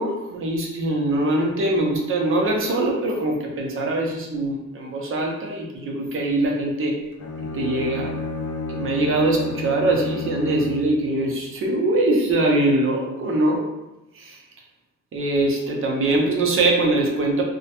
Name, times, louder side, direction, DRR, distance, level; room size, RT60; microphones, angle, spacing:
voice 1, 0.0-7.0 7.5-8.2 8.7-13.6 14.1-14.4 15.1-17.4, right 2 dB, 45° right, 0 dB, 0.6 m, -22 dB
Bowed string instrument, 7.1-11.0, left 3 dB, 50° left, 0.4 m, -31 dB
2.1 x 2.1 x 2.8 m, 0.94 s
cardioid pair, 95°, 30 cm